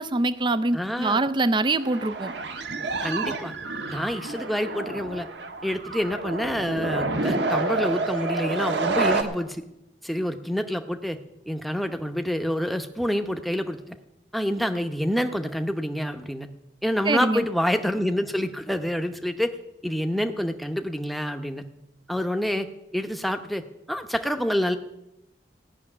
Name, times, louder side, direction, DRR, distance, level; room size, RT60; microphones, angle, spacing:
voice 1, 0.0-2.3 17.1-17.5, right 2 dB, 25° right, 13 dB, 0.4 m, -24 dB
voice 2, 0.7-1.2 3.0-3.5 3.9-5.3 5.6-9.6 10.0-11.2 11.5-14.0 14.3-16.5 16.8-19.5 19.8-21.6 22.1-22.7 22.9-23.6 23.9-24.8, equal, ahead, 7 dB, 0.8 m, -27 dB
sound 1, 1.7-9.2, right 3 dB, 75° right, 1.3 m, -29 dB
16.0 x 6.4 x 9.8 m, 0.90 s
head